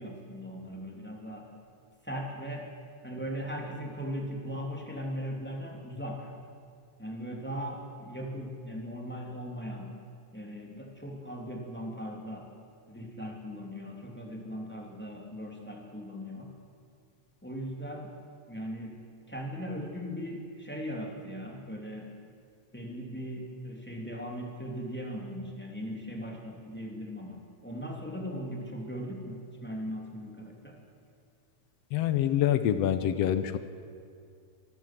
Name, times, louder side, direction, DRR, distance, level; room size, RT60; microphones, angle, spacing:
voice 1, 0.0-1.5 2.0-2.6 3.0-6.3 7.0-9.9 10.3-12.5 12.9-16.5 17.4-18.1 18.5-19.0 19.3-22.1 22.7-30.8, equal, 5° left, -1 dB, 2.5 m, -38 dB
voice 2, 31.9-33.6, left 10 dB, 70° left, 11 dB, 1.8 m, -26 dB
24.5 x 14.5 x 7.6 m, 2.3 s
omnidirectional pair, 3.4 m